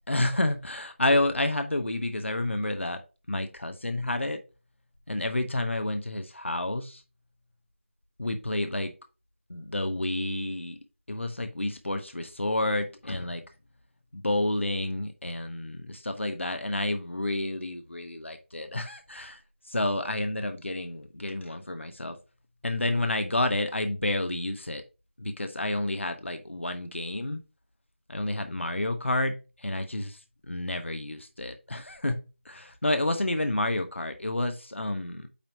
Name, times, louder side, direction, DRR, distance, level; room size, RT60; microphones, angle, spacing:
voice 1, 0.1-3.0 3.3-4.4 5.1-7.0 8.2-8.9 9.5-10.8 11.1-13.4 14.1-22.2 22.6-24.8 25.2-27.4 28.1-32.2 32.4-35.3, left 1 dB, 70° left, 1.1 m, -30 dB
8.6 x 3.0 x 5.1 m
figure-of-eight pair, 175°, 7 cm